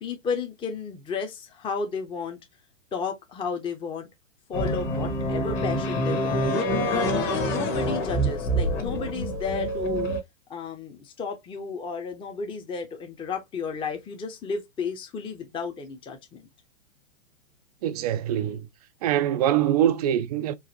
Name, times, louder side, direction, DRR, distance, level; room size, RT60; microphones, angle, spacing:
voice 1, 0.0-2.4 2.9-4.1 4.5-6.5 6.9-7.2 7.5-10.1 10.5-16.5, left 5 dB, 15° left, 0.7 m, -33 dB
sound 1, 4.5-10.2, equal, 30° left, 1.2 m, -26 dB
voice 2, 17.8-18.6 19.0-20.5, right 11 dB, 35° right, 0.4 m, -23 dB
4.7 x 2.5 x 2.9 m
hypercardioid pair, 120°, 39 cm